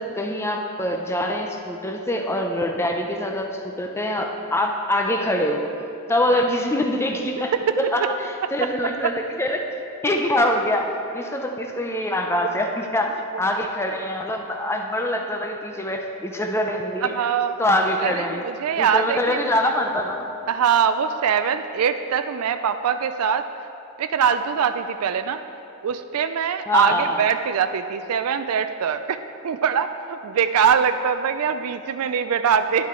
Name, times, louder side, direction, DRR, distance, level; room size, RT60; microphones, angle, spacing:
voice 1, 0.0-5.6 6.1-7.5 7.9-8.0 8.5-9.1 9.4-9.6 10.0-10.9 11.1-17.1 17.6-18.4 18.8-20.2 26.7-27.2, left 1 dB, 10° left, 2 dB, 0.6 m, -24 dB
voice 2, 17.0-17.5 18.0-19.5 20.5-23.5 24.0-25.4 25.8-32.9, right 7 dB, 80° right, 9 dB, 0.4 m, -23 dB
11.0 x 8.7 x 3.7 m, 2.6 s
head